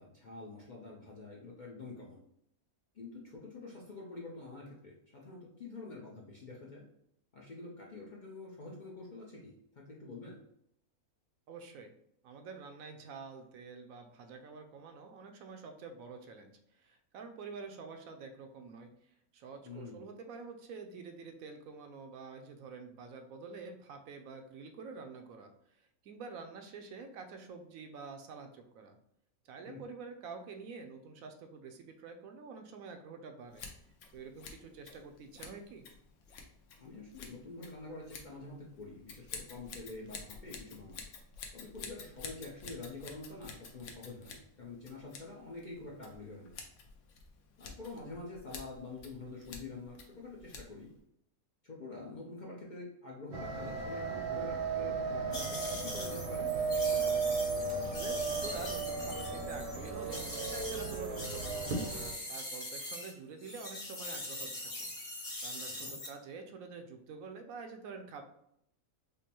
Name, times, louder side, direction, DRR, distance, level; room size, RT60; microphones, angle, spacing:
voice 1, 0.0-2.2 2.9-6.8 7.3-10.4 19.6-20.0 29.7-29.8 36.8-41.0 41.5-46.6 47.6-50.9 51.6-56.5 65.8-65.9, left 3 dB, 50° left, -4 dB, 0.6 m, -47 dB
voice 2, 11.5-11.9 12.2-18.9 19.3-29.0 29.4-33.7 34.1-35.8 57.8-61.8 62.3-68.2, right 4 dB, 75° right, 5 dB, 1.0 m, -48 dB
Scissors, 33.5-51.0, left 5 dB, 65° left, 0.9 m, -51 dB
sound 1, 53.3-62.1, right 4 dB, 55° right, 0.7 m, -35 dB
sound 2, 55.3-63.1 63.4-66.1, left 1 dB, 85° left, 1.9 m, -42 dB
5.2 x 2.1 x 2.9 m, 0.74 s
omnidirectional pair, 1.5 m